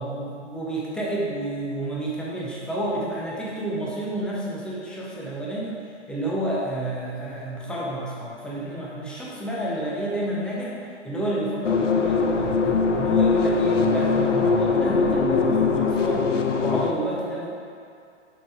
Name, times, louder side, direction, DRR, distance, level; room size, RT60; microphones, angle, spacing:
voice 1, 0.0-5.8 6.1-10.8 11.0-17.5, right 1 dB, 5° left, -5 dB, 0.4 m, -30 dB
sound 1, 11.6-16.9, left 4 dB, 85° left, 0.6 m, -21 dB
6.9 x 3.8 x 4.3 m, 2.4 s
figure-of-eight pair, 110°, 36 cm